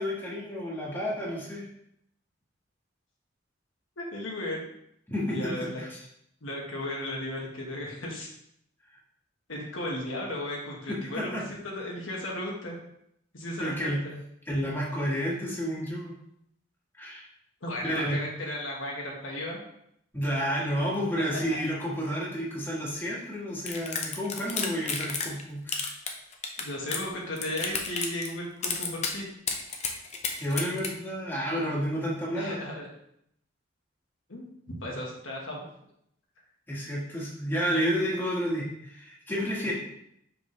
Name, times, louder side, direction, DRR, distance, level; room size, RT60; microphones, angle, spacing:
voice 1, 0.0-1.7 5.1-6.0 10.9-11.4 13.6-14.0 14.4-16.1 17.0-17.2 17.8-18.2 20.1-25.9 30.4-32.7 36.7-39.7, equal, 10° left, -6 dB, 1.7 m, -30 dB
voice 2, 4.0-4.6 5.3-5.8 6.4-8.3 9.5-12.8 13.3-13.7 14.0-14.1 17.6-19.6 26.6-29.3 32.3-32.9 34.3-35.6 39.6-39.7, left 1 dB, 75° left, -2 dB, 1.5 m, -35 dB
sound 1, 23.7-25.4 25.7-27.1 27.4-28.3 28.6-29.1 29.5-30.9, left 5 dB, 35° left, 0.7 m, -31 dB
5.7 x 5.1 x 3.2 m, 0.74 s
head